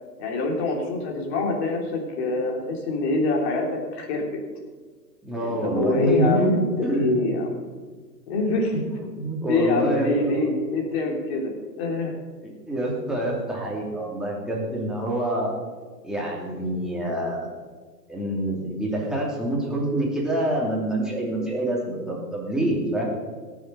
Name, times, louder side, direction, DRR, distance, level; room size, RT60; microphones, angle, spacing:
voice 1, 0.2-4.3 5.4-7.6 8.3-8.7 9.5-12.1, left 2 dB, 40° left, 1 dB, 3.2 m, -25 dB
voice 2, 5.2-7.2 8.7-10.5 12.4-15.5 16.0-17.6 18.1-23.0, right 1 dB, ahead, -4 dB, 2.7 m, -26 dB
17.5 x 7.2 x 5.5 m, 1.4 s
hypercardioid pair, 130°, 49 cm